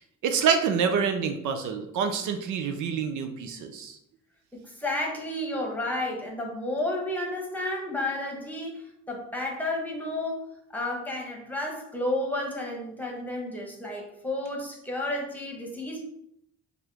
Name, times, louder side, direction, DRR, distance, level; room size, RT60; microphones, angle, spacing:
voice 1, 0.2-4.0, right 6 dB, 75° right, 6 dB, 0.6 m, -27 dB
voice 2, 4.5-10.4 10.7-16.0, left 1 dB, 5° left, -1 dB, 1.1 m, -32 dB
4.5 x 2.6 x 3.4 m, 0.75 s
cardioid pair, 90°, 30 cm